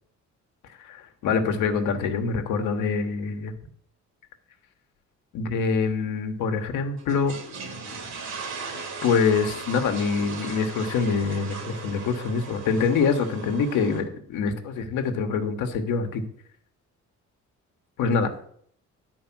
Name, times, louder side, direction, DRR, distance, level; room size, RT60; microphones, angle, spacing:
voice 1, 0.8-3.5 5.3-7.4 9.0-16.2 18.0-18.3, left 5 dB, 90° left, 5 dB, 1.2 m, -25 dB
Toilet Flush, 7.0-14.0, right 4 dB, 70° right, 1.9 m, -37 dB
9.8 x 4.7 x 6.0 m, 0.63 s
cardioid pair, 90°, 30 cm